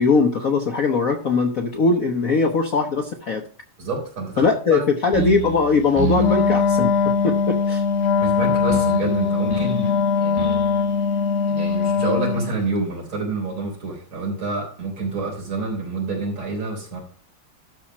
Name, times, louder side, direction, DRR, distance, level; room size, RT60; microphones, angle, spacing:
voice 1, 0.0-3.4 4.4-6.9 7.2-7.8, left 4 dB, 55° left, 4 dB, 1.0 m, -20 dB
voice 2, 3.8-4.8 8.2-10.5 11.5-17.0, right 3 dB, 70° right, -1 dB, 4.7 m, -28 dB
sound 1, 5.1-12.6, right 2 dB, 10° right, 1.9 m, -31 dB
Wind instrument woodwind instrument, 6.1-12.6, left 5 dB, 75° left, 1.8 m, -21 dB
12.5 x 4.3 x 5.8 m, 0.43 s
omnidirectional pair, 2.4 m